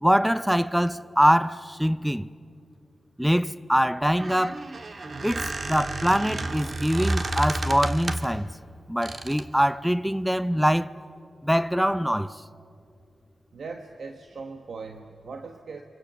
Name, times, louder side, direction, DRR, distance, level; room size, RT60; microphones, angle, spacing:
voice 1, 0.0-2.3 3.2-4.6 5.2-8.5 8.9-10.9 11.4-12.4, equal, 5° right, 0.6 m, -23 dB
Squeak, 4.0-8.4 9.0-9.5, right 2 dB, 50° right, 1.7 m, -31 dB
voice 2, 13.5-15.8, right 4 dB, 70° right, 1.3 m, -39 dB
30.0 x 26.5 x 6.9 m
cardioid pair, 80°, 0 cm